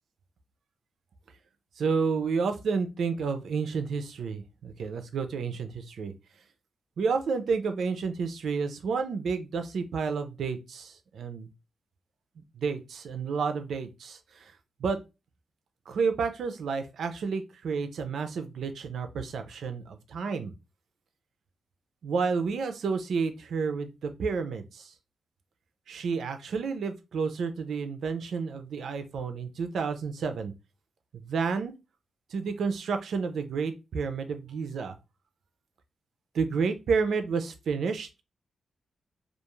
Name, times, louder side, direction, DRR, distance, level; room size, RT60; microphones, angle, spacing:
voice 1, 1.8-6.1 7.0-11.5 12.5-14.5 14.8-15.0 15.9-20.5 22.0-24.9 25.9-30.5 31.2-31.7 32.3-35.0 36.3-38.2, right 5 dB, 75° right, 8 dB, 0.4 m, -30 dB
2.4 x 2.3 x 2.9 m, 0.26 s
wide cardioid pair, 175°, 0 cm